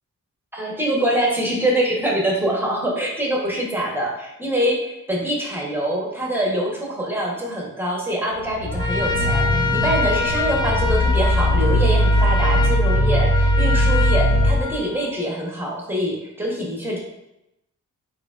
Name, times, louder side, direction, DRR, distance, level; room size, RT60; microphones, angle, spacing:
voice 1, 0.5-17.0, right 1 dB, 5° right, -2 dB, 0.9 m, -24 dB
sound 1, 8.5-14.6, equal, 90° left, 1.1 m, -19 dB
Trumpet, 8.7-15.2, left 4 dB, 15° left, 0.3 m, -26 dB
4.6 x 4.3 x 2.3 m, 0.88 s
wide cardioid pair, 150°, 32 cm